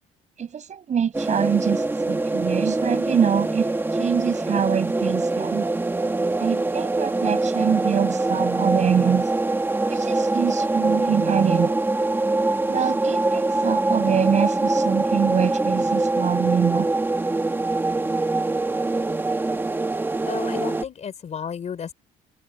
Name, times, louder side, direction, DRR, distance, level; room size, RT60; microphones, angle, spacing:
voice 1, 0.4-5.7 6.4-9.3 9.9-11.8 12.7-16.9, right 7 dB, 45° right, 6.4 m, -24 dB
sound 1, 1.1-20.8, right 2 dB, 10° right, 1.4 m, -24 dB
voice 2, 20.3-21.9, left 7 dB, 40° left, 4.1 m, -32 dB
cardioid pair, 110°, 17 cm